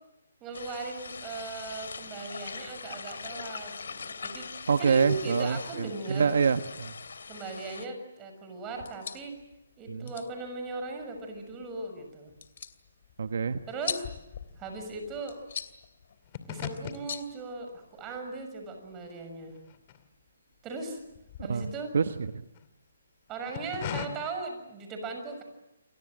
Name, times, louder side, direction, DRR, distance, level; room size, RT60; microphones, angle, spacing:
voice 1, 0.4-4.5 4.8-6.5 7.3-9.3 9.8-12.3 13.7-14.0 14.6-15.4 16.5-19.5 20.6-21.0 21.4-21.9 23.3-25.4, right 3 dB, 15° right, 5 dB, 6.6 m, -38 dB
sound 1, 0.5-7.9, left 5 dB, 75° left, 2.8 m, -42 dB
voice 2, 4.7-6.9 9.9-10.1 13.2-13.6 21.5-21.6 21.9-22.4, right 5 dB, 65° right, 9 dB, 1.2 m, -26 dB
sound 2, 8.7-18.2, left 7 dB, 55° left, 2.6 m, -44 dB
sound 3, 11.2-12.0 12.3-20.6 20.9-22.7 23.3-24.1, left 10 dB, 35° left, 2.7 m, -42 dB
29.5 x 23.0 x 7.8 m, 0.92 s
hypercardioid pair, 155°, 0 cm